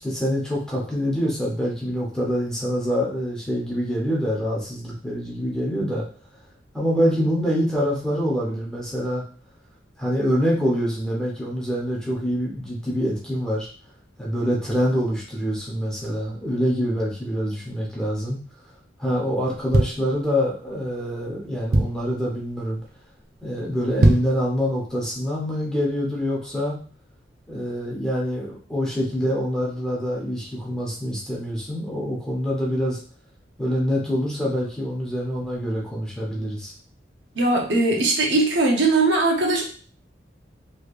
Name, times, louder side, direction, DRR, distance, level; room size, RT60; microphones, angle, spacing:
voice 1, 0.0-6.1 6.7-9.2 10.0-13.7 14.2-18.4 19.0-22.8 23.4-26.8 27.5-33.0 33.6-36.7, equal, 5° left, -4 dB, 1.0 m, -25 dB
sound 1, 19.4-20.7 21.2-21.3 21.4-22.2 22.7-22.9 23.2-23.3 23.8-24.5 24.9-25.0, right 1 dB, 55° right, 0.5 m, -21 dB
voice 2, 37.4-39.6, right 2 dB, 80° right, 0 dB, 0.8 m, -20 dB
3.2 x 3.2 x 2.5 m, 0.41 s
head